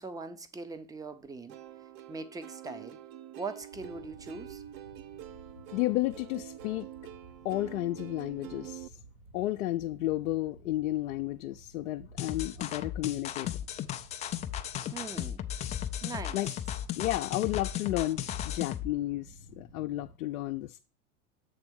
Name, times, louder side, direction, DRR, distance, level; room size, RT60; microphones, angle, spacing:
voice 1, 0.0-1.6 2.1-3.0 3.4-4.6 14.9-15.4 16.0-16.4, right 3 dB, 10° right, 0.7 m, -41 dB
Plucked string instrument, 1.5-8.9, right 12 dB, 50° right, 0.8 m, -46 dB
sound 1, 3.7-20.2, right 2 dB, 80° right, 2.2 m, -54 dB
voice 2, 5.7-6.9 7.4-8.9 9.3-13.5 16.3-16.5 17.0-20.8, left 16 dB, 70° left, 0.6 m, -32 dB
sound 2, 12.2-18.9, left 11 dB, 20° left, 0.3 m, -35 dB
8.0 x 3.5 x 6.2 m
hypercardioid pair, 100°, 41 cm